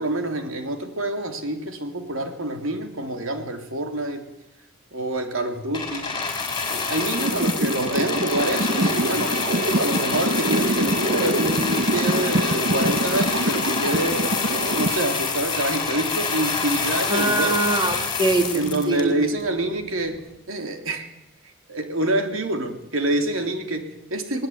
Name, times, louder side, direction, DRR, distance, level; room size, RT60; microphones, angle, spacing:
voice 1, 0.0-4.2 4.9-6.2 6.7-14.3 14.7-17.5 18.5-20.2 20.5-21.1 21.7-24.5, right 1 dB, 85° right, 5 dB, 3.2 m, -27 dB
sound 1, 5.7-19.4 20.2-20.3, left 4 dB, 20° left, 4.6 m, -27 dB
sound 2, 7.0-14.9, right 1 dB, 55° right, 1.0 m, -25 dB
voice 2, 17.1-19.2, right 2 dB, 20° right, 5 dB, 2.4 m, -23 dB
20.5 x 20.0 x 9.4 m, 0.87 s
head